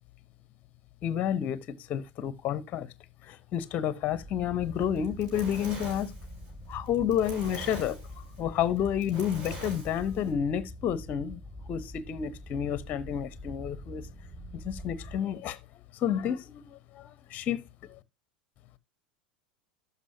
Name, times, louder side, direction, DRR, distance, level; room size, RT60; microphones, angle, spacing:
voice 1, 1.0-2.9 3.2-6.1 6.7-8.0 8.4-11.4 11.7-14.1 14.6-15.6 15.9-17.6, left 9 dB, 35° left, 0.8 m, -30 dB
sound 1, 4.1-15.2, equal, 15° right, 3.8 m, -45 dB
Fire, 4.8-10.3, right 2 dB, 50° right, 5.9 m, -44 dB
12.5 x 5.4 x 2.7 m
figure-of-eight pair, 80°, 5 cm